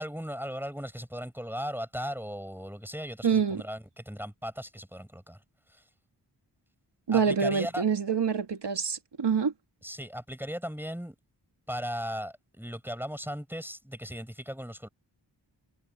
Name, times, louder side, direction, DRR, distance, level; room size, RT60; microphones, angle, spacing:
voice 1, 0.0-5.4 5.7-5.8 7.1-7.8 9.8-11.1 11.7-14.9, equal, 5° right, 4.9 m, -37 dB
voice 2, 3.2-3.6 7.1-9.5, right 6 dB, 70° right, 2.4 m, -26 dB
wide cardioid pair, 65°, 44 cm